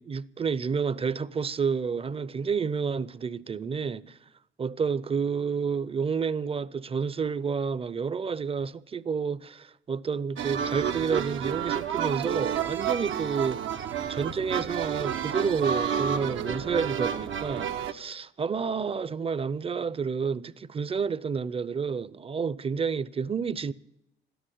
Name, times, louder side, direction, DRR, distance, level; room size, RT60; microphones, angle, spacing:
voice 1, 0.0-4.2 4.6-13.6 14.1-23.7, right 6 dB, 30° right, 0.6 m, -30 dB
sound 1, 10.4-17.9, right 8 dB, 75° right, 0.9 m, -30 dB
13.0 x 10.0 x 10.0 m
cardioid pair, 90°, 20 cm